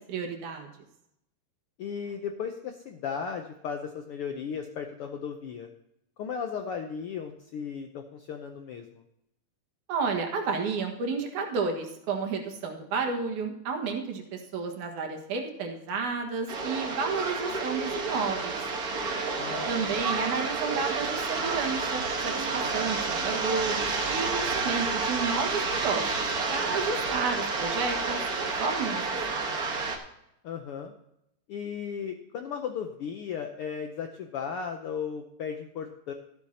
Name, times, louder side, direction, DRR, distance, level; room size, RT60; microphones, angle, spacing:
voice 1, 0.1-0.7 9.9-18.6 19.7-26.1 26.5-29.0 29.3-29.7, right 5 dB, 90° right, 3 dB, 3.0 m, -31 dB
voice 2, 1.8-5.7 6.2-9.0 19.4-20.0 30.4-30.9 31.5-36.1, left 7 dB, 80° left, 5 dB, 1.3 m, -36 dB
sound 1, 16.5-30.0, right 4 dB, 50° right, 1.2 m, -30 dB
13.0 x 11.5 x 2.8 m, 0.81 s
omnidirectional pair, 3.4 m